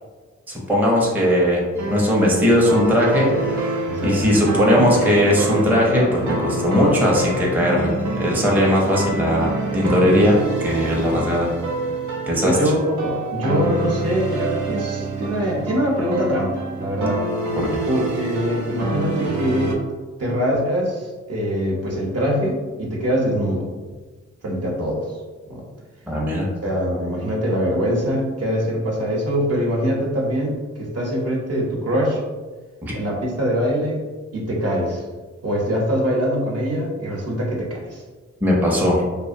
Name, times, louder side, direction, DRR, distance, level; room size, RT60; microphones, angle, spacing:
voice 1, 0.5-7.9 8.2-11.5 12.3-12.7 17.6-17.9 26.1-26.5 32.8-32.9 38.4-39.0, equal, 5° right, -3 dB, 0.5 m, -19 dB
sound 1, 1.7-19.7, right 2 dB, 85° right, 0.5 m, -27 dB
voice 2, 3.9-4.4 4.7-4.9 12.4-17.2 17.8-19.8 20.2-23.7 24.4-25.1 25.5-25.7 26.6-32.2 32.9-34.0 34.3-35.0 35.4-38.0, equal, 55° right, -4 dB, 0.8 m, -23 dB
2.4 x 2.1 x 2.5 m, 1.3 s
cardioid pair, 60°, 29 cm